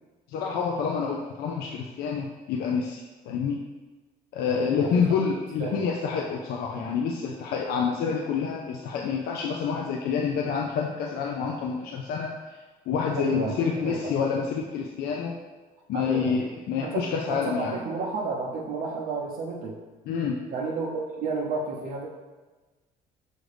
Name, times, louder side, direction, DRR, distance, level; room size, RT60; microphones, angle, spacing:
voice 1, 0.3-3.6 4.3-12.3 12.9-15.4 15.9-17.8 20.1-20.4, left 6 dB, 70° left, 0 dB, 0.5 m, -28 dB
voice 2, 13.2-14.1 15.9-16.4 16.8-19.8 20.5-22.1, right 4 dB, 60° right, -3 dB, 0.7 m, -32 dB
6.3 x 2.5 x 3.3 m, 1.3 s
cardioid pair, 110°, 17 cm